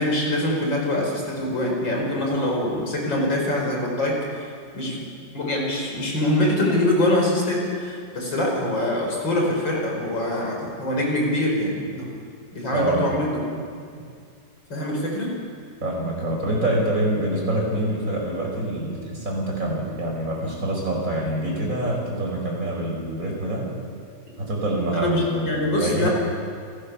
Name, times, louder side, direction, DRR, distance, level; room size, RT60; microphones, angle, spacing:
voice 1, 0.0-4.5 4.7-5.1 5.3-12.1 12.5-13.6 14.7-15.3 24.9-26.1, left 1 dB, 90° left, -1 dB, 6.0 m, -24 dB
voice 2, 12.7-13.2 15.8-23.7 24.4-26.1, right 1 dB, 45° right, -1 dB, 5.5 m, -26 dB
28.5 x 17.5 x 7.1 m, 2.3 s
omnidirectional pair, 2.0 m